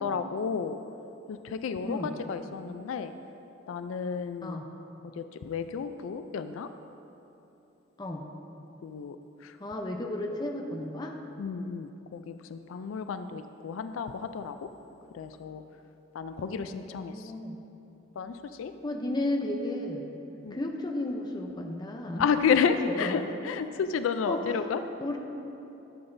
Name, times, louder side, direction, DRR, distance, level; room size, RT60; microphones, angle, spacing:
voice 1, 0.0-0.8 1.3-3.1 3.7-4.6 5.2-6.7 8.8-9.2 9.4-9.5 11.4-14.6 15.1-15.6 16.1-17.1 18.2-18.7 20.4-20.6 22.2-24.8, left 6 dB, 75° left, 9 dB, 0.3 m, -31 dB
voice 2, 1.8-2.1 4.4-4.7 8.0-8.3 9.6-11.2 16.4-17.6 18.8-20.0 20.5-22.3 22.8-23.2 24.2-24.7 25.0-25.2, left 1 dB, 20° left, 2 dB, 0.5 m, -34 dB
12.0 x 7.9 x 2.6 m, 2.9 s
head